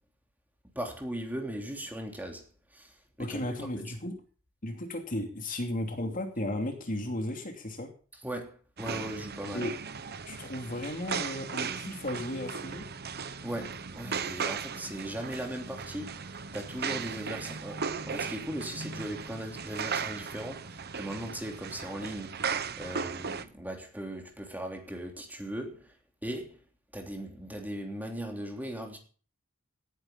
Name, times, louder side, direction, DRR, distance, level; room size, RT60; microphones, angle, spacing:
voice 1, 0.7-2.4 2.7-3.7 8.2-9.6 13.4-22.5 22.8-25.9 26.2-26.6 26.9-29.0, right 1 dB, 10° right, 3.2 m, -38 dB
voice 2, 3.2-4.2 4.6-7.9 9.5-9.7 10.3-12.9, left 1 dB, 40° left, 2.7 m, -35 dB
sound 1, 8.8-23.4, right 6 dB, 50° right, 1.1 m, -37 dB
18.0 x 10.5 x 3.9 m
head